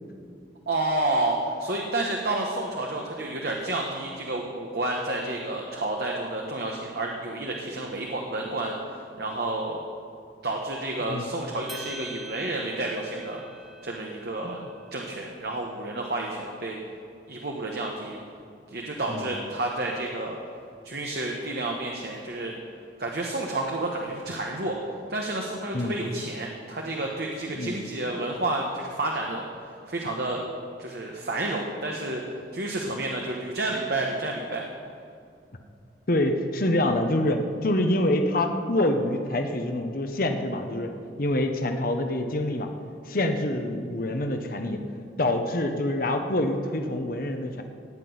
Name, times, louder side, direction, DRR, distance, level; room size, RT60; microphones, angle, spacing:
voice 1, 0.7-9.8 10.4-13.4 13.8-14.6 14.9-16.8 17.3-18.2 18.7-20.4 20.8-22.5 23.0-24.8 25.1-30.4 30.8-32.2 32.5-34.6, right 2 dB, 60° right, 0 dB, 1.3 m, -30 dB
sound 1, 11.7-16.1, right 2 dB, ahead, 0.8 m, -46 dB
voice 2, 36.1-40.9 41.2-42.7 43.1-44.8 45.2-47.6, left 1 dB, 55° left, 5 dB, 1.1 m, -26 dB
16.5 x 6.1 x 9.5 m, 2.5 s
head